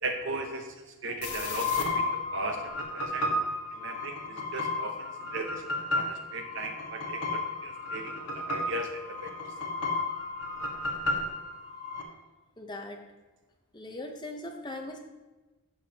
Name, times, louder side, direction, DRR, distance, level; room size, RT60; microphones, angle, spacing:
voice 1, 0.0-3.3 3.7-5.6 5.9-9.5, right 2 dB, 55° right, 5 dB, 0.9 m, -37 dB
sound 1, 1.2-12.0, left 2 dB, 90° left, 1.2 m, -33 dB
voice 2, 12.6-13.0 13.7-15.0, left 1 dB, 20° left, 2 dB, 0.8 m, -39 dB
11.0 x 6.4 x 2.9 m, 1.2 s
head